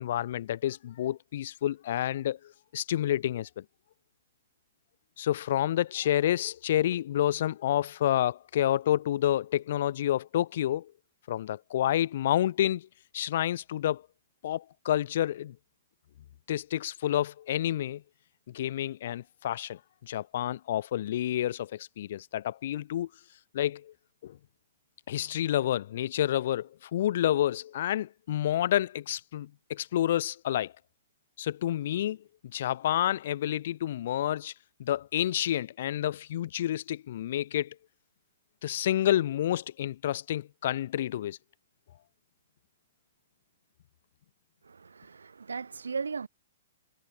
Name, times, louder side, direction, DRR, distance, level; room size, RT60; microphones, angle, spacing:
voice 1, 0.0-3.6 5.2-10.9 11.3-12.9 13.1-14.0 14.4-15.5 16.5-18.0 18.5-23.1 23.5-23.9 24.2-24.4 25.1-30.7 31.4-32.2 32.5-34.5 34.8-37.8 38.6-41.4, left 12 dB, 50° left, 0.8 m, -29 dB
voice 2, 44.7-46.3, right 5 dB, 70° right, 0.6 m, -36 dB
figure-of-eight pair, 115°, 0 cm